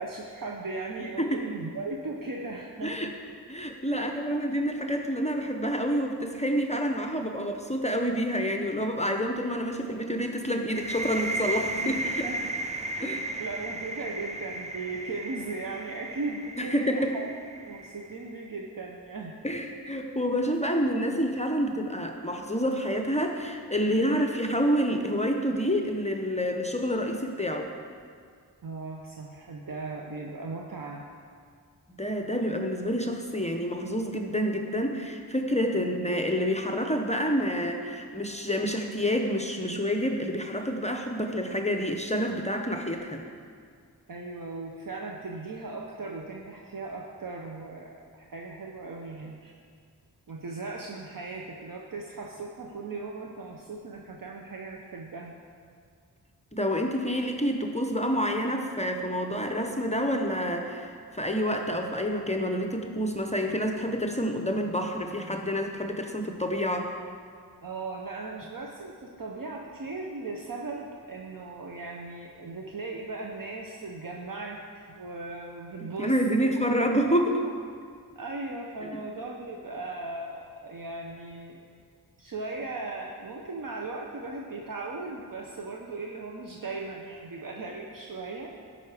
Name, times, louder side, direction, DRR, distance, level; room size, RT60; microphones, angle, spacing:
voice 1, 0.0-3.2 3.9-4.3 11.8-11.9 12.2-12.4 12.9-17.3 17.6-19.4 28.6-31.0 35.8-35.9 44.1-49.6 50.3-55.3 67.6-76.5 77.3-77.4 78.2-81.6 82.2-88.5, right 3 dB, 55° right, 0 dB, 0.8 m, -38 dB
voice 2, 3.5-12.2 13.0-13.2 16.6-17.2 19.4-27.7 31.9-43.2 56.5-66.9 75.8-77.4 78.8-78.9, equal, 15° left, 3 dB, 0.7 m, -28 dB
sound 1, 10.7-18.3, right 2 dB, 20° right, 0.5 m, -35 dB
13.0 x 5.7 x 4.9 m, 2.2 s
wide cardioid pair, 70°, 39 cm